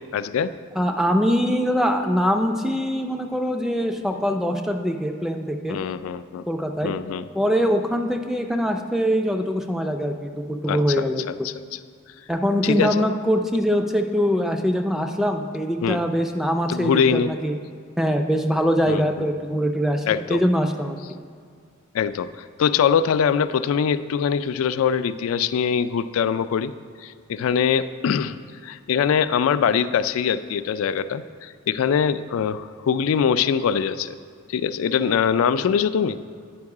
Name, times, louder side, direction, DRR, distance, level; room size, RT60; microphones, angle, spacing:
voice 1, 0.1-0.5 5.7-6.4 6.8-7.3 10.7-11.5 12.6-13.1 15.8-16.0 16.7-17.3 18.9-19.3 20.1-20.4 21.9-26.7 27.0-28.4 28.6-34.1 34.5-36.2, left 7 dB, 85° left, 13 dB, 0.3 m, -23 dB
voice 2, 0.8-5.8 6.5-6.9 7.4-11.2 12.3-17.5 18.0-21.0, equal, ahead, 4 dB, 0.3 m, -23 dB
9.4 x 5.3 x 4.8 m, 2.1 s
head